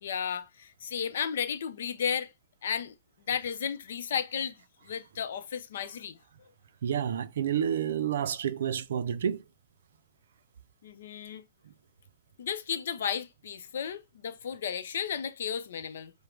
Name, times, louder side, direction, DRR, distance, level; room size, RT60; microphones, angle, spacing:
voice 1, 0.0-2.3 2.6-2.9 3.3-4.6 4.9-6.2 10.8-11.4 12.4-16.1, left 7 dB, 75° left, 0.5 m, -33 dB
voice 2, 6.8-9.4, right 9 dB, 80° right, 0.4 m, -29 dB
5.0 x 2.1 x 4.5 m
hypercardioid pair, 165°, 0 cm